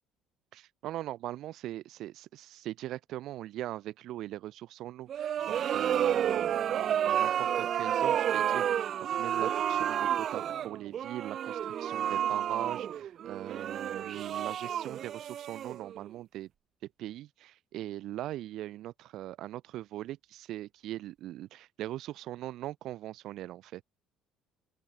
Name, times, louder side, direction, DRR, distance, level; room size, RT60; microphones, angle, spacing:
voice 1, 0.5-16.5 17.0-23.8, right 14 dB, 65° right, 1.1 m, -40 dB
sound 1, 5.1-16.1, right 9 dB, 50° right, 0.7 m, -30 dB
open air
cardioid pair, 110°, 0 cm